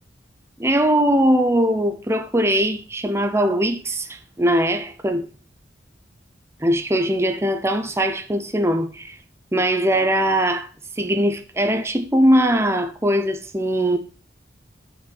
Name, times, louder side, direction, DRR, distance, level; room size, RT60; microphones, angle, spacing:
voice 1, 0.6-5.3 6.6-9.2 9.5-10.7 11.0-14.0, equal, 15° right, 0.7 m, -20 dB
8.1 x 5.9 x 5.4 m
head